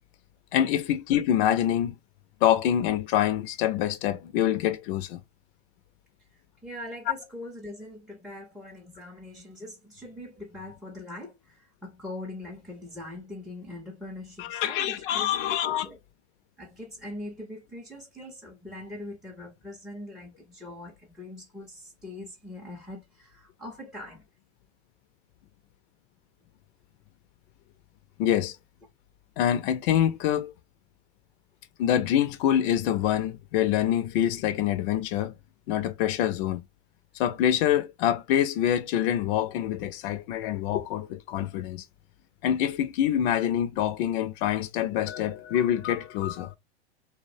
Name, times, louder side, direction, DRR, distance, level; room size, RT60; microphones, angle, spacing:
voice 1, 0.5-2.0 2.4-5.2 14.4-15.9 28.2-28.6 29.4-30.5 31.8-35.3 35.7-36.6 37.1-41.9 42.4-46.6, left 11 dB, 55° left, 0.4 m, -25 dB
voice 2, 6.3-16.0 16.6-24.2, left 1 dB, ahead, 0.5 m, -42 dB
2.5 x 2.0 x 2.5 m
hypercardioid pair, 105°, 32 cm